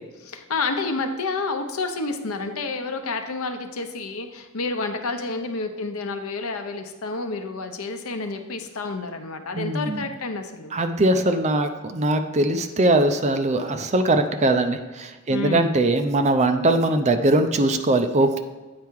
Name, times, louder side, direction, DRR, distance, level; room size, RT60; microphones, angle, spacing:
voice 1, 0.2-10.8 15.3-15.6, left 3 dB, 75° left, 7 dB, 0.8 m, -29 dB
voice 2, 9.5-10.1 10.7-18.4, right 2 dB, 30° right, 8 dB, 0.5 m, -21 dB
8.5 x 4.7 x 4.6 m, 1.2 s
head